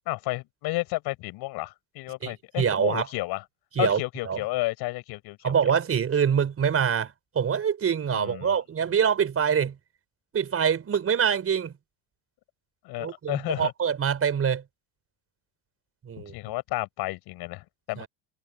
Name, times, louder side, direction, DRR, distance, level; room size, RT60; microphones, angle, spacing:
voice 1, 0.1-3.4 3.8-5.5 8.1-8.6 12.8-13.7 16.3-18.1, left 20 dB, 70° left, 6.1 m, -32 dB
voice 2, 2.2-3.1 3.8-4.4 5.4-9.8 10.3-11.7 13.0-14.6 16.0-16.3 18.0-18.1, right 7 dB, 35° right, 5.5 m, -25 dB
supercardioid pair, 105°, 39 cm